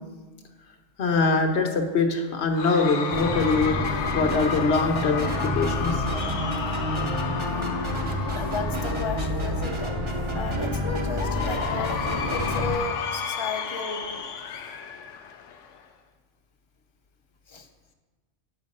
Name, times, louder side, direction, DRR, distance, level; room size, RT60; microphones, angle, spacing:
voice 1, 1.0-3.8 4.1-6.0, left 3 dB, 65° left, 4 dB, 1.2 m, -23 dB
Cheering / Crowd, 2.6-9.9 11.1-15.9, left 7 dB, 80° left, 1.0 m, -33 dB
sound 1, 3.1-12.8, left 1 dB, 25° right, 0.8 m, -28 dB
voice 2, 8.4-10.0 10.3-14.2 17.5-17.7, left 4 dB, 30° left, 5 dB, 0.6 m, -34 dB
8.9 x 6.1 x 5.3 m, 1.3 s
omnidirectional pair, 1.3 m